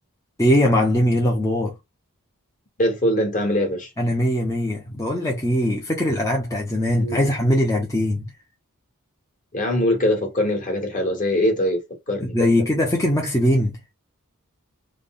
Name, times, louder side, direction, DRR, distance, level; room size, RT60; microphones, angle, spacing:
voice 1, 0.4-1.7 4.0-8.3 12.2-13.8, left 1 dB, 15° left, 0.8 m, -21 dB
voice 2, 2.8-3.9 7.0-7.2 9.5-11.8 12.1-12.5, left 1 dB, 35° left, 1.6 m, -22 dB
3.6 x 2.3 x 3.8 m
head